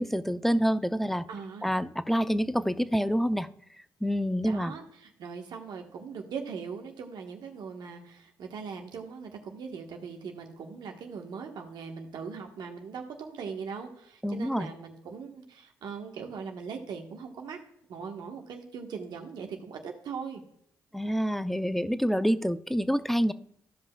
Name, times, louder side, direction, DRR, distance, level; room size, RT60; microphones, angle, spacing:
voice 1, 0.0-1.3 1.6-3.5 4.0-4.7 14.2-14.7 20.9-23.3, equal, 5° left, 13 dB, 0.5 m, -27 dB
voice 2, 1.3-1.7 4.4-17.6 17.9-20.4, right 5 dB, 70° right, 3 dB, 1.2 m, -40 dB
14.5 x 5.4 x 2.3 m, 0.74 s
supercardioid pair, 55°, 8 cm